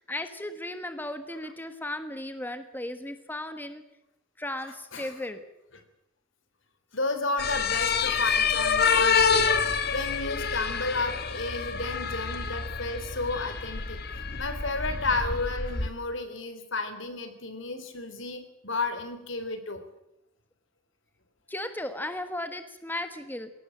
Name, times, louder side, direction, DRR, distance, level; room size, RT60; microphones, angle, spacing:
voice 1, 0.0-3.8 4.4-5.5 21.5-23.5, left 1 dB, 10° left, 9 dB, 1.3 m, -36 dB
voice 2, 6.9-19.8, left 3 dB, 70° left, 9 dB, 3.6 m, -32 dB
sound 1, 7.4-15.9, left 5 dB, 50° left, 1.6 m, -27 dB
21.5 x 18.0 x 9.0 m, 0.86 s
head